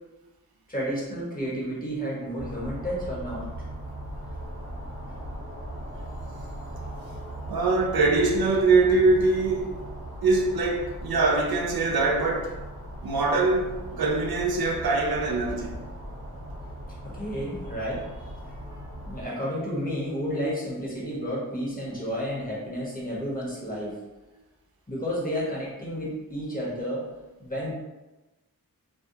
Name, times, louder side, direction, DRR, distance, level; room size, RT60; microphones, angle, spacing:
voice 1, 0.7-3.5 17.0-18.3 18.6-24.0 24.9-27.1 27.4-27.7, equal, 25° left, 1.1 m, -31 dB
sound 1, 2.4-19.3, right 1 dB, 40° right, 0.8 m, -39 dB
voice 2, 7.5-9.9 10.2-12.5 13.0-15.8, right 3 dB, 75° right, 0.5 m, -23 dB
2.4 x 2.3 x 2.7 m
wide cardioid pair, 50°, 36 cm